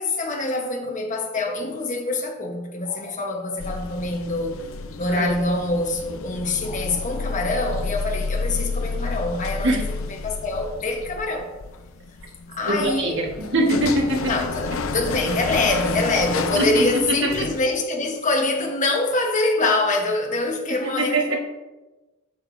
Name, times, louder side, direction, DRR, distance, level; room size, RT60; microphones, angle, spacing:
voice 1, 0.0-4.6 5.0-9.7 10.2-11.5 12.5-13.2 14.2-21.4, left 2 dB, 40° left, 1.1 m, -25 dB
sound 1, 3.6-17.6, left 4 dB, 75° left, 0.5 m, -31 dB
voice 2, 12.7-14.3 16.6-17.3 20.8-21.4, right 1 dB, 65° right, 1.4 m, -23 dB
8.4 x 6.6 x 2.6 m
head